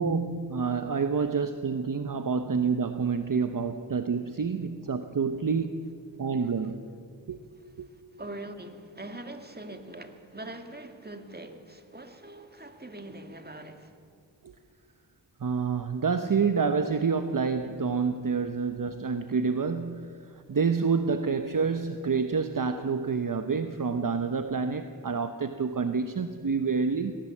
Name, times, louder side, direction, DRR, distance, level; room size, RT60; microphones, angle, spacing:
voice 1, 0.0-5.8 6.2-6.8 7.3-7.4 7.8-7.9 15.4-20.2 20.5-27.2, right 5 dB, 45° right, 1.0 m, -28 dB
voice 2, 8.2-14.0, right 1 dB, 20° right, 2.1 m, -42 dB
19.5 x 18.0 x 7.4 m
cardioid pair, 60°, 45 cm